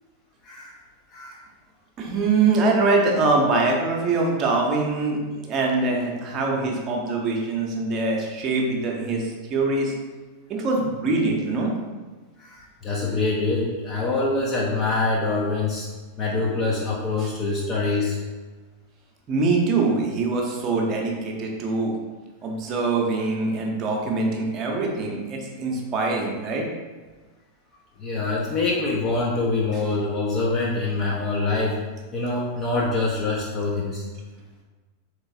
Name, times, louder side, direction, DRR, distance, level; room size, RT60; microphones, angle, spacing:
voice 1, 0.4-0.7 1.1-1.4 12.4-15.9 16.2-18.2 28.0-31.8 32.1-34.0, left 3 dB, 30° left, -4 dB, 0.5 m, -25 dB
voice 2, 2.0-9.9 10.5-11.7 17.2-17.3 19.3-21.9 22.4-26.7, right 3 dB, 30° right, -1 dB, 0.7 m, -23 dB
3.8 x 3.0 x 2.6 m, 1.3 s
figure-of-eight pair, 90°, 0 cm